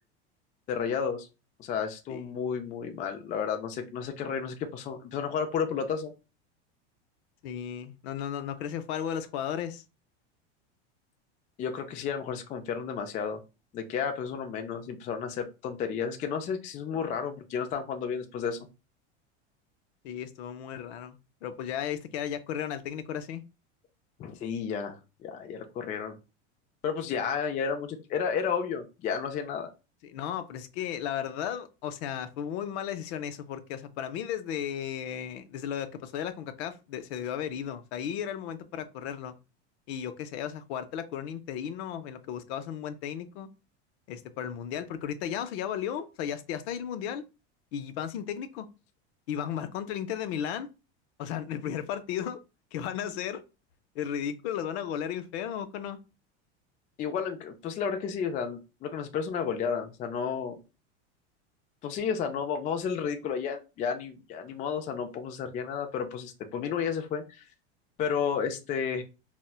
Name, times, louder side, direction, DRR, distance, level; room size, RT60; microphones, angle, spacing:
voice 1, 0.7-1.3 1.6-6.1 11.6-13.4 13.7-18.6 24.2-26.2 26.8-29.7 57.0-60.6 61.8-67.4 68.0-69.0, left 6 dB, 25° left, 0.3 m, -32 dB
voice 2, 7.4-9.8 20.0-23.4 30.0-39.3 39.9-43.5 44.1-47.2 47.7-48.7 49.3-50.7 51.2-52.4 52.7-53.4 53.9-56.0, left 9 dB, 65° left, 0.6 m, -35 dB
4.1 x 2.1 x 2.2 m
supercardioid pair, 120°, 35 cm